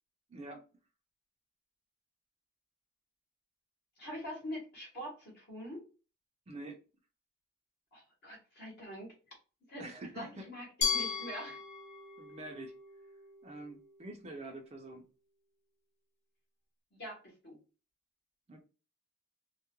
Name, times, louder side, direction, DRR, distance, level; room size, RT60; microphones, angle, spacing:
voice 1, 0.3-0.6 6.5-6.8 9.8-10.5 12.2-12.8 13.4-15.0 18.5-18.6, right 2 dB, 30° right, 0.4 m, -46 dB
voice 2, 4.0-5.8 7.9-9.1 9.7-11.6 16.9-17.6, equal, 50° left, 1.0 m, -44 dB
Glass, 10.8-13.7, left 5 dB, 35° left, 0.6 m, -37 dB
2.2 x 2.1 x 2.9 m
head